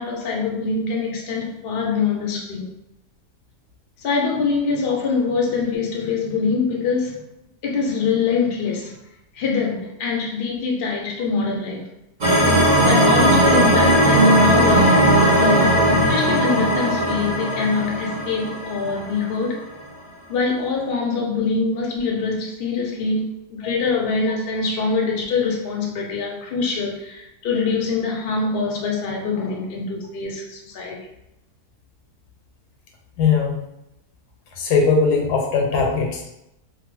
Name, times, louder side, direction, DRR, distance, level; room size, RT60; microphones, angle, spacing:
voice 1, 0.0-2.7 4.0-7.2 7.6-9.0 9.3-11.8 12.5-19.6 20.3-31.0, left 4 dB, 60° left, -1 dB, 0.6 m, -24 dB
sound 1, 12.2-19.3, equal, 70° right, 0.4 m, -17 dB
voice 2, 33.2-33.6 34.5-36.3, left 5 dB, 80° left, 1 dB, 1.2 m, -20 dB
2.8 x 2.0 x 3.0 m, 0.86 s
omnidirectional pair, 1.7 m